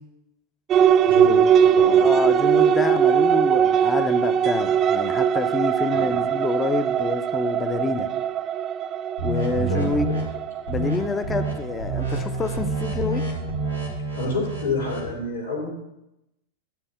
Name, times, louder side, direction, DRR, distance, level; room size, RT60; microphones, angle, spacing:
sound 1, 0.7-12.6, right 8 dB, 30° right, 0.4 m, -21 dB
voice 1, 1.0-2.0 5.9-6.2 9.4-9.9 14.1-15.7, left 3 dB, 60° left, -1 dB, 3.2 m, -29 dB
voice 2, 2.0-8.1 9.2-10.1 10.7-13.2, left 3 dB, 15° left, 10 dB, 0.7 m, -27 dB
sound 2, 9.2-10.2 10.7-11.0 11.2-11.5 11.8-15.1, right 3 dB, 90° left, 2.9 m, -28 dB
11.0 x 4.1 x 6.7 m, 0.87 s
figure-of-eight pair, 90°, 0 cm